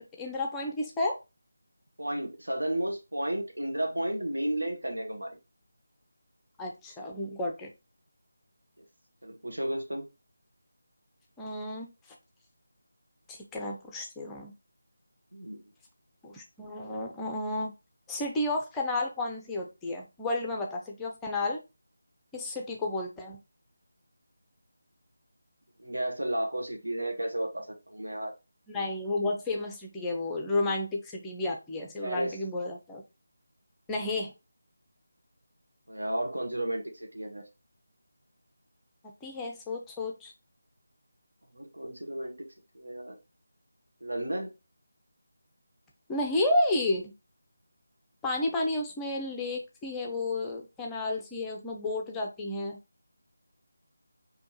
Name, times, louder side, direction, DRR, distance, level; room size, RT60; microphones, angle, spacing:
voice 1, 0.2-1.2 6.6-7.7 11.4-11.9 13.3-14.5 16.2-17.7 18.1-21.6 22.3-23.4 28.7-33.0 33.9-34.3 39.2-40.3 46.1-47.1 48.2-52.8, left 2 dB, 10° left, 0.5 m, -31 dB
voice 2, 2.0-5.4 9.2-10.1 15.3-15.6 25.8-28.3 32.0-32.4 35.9-37.4 41.5-42.5 42.7-43.1 44.0-44.5, right 1 dB, 75° right, 1.1 m, -33 dB
4.4 x 2.7 x 2.9 m
figure-of-eight pair, 160°, 0 cm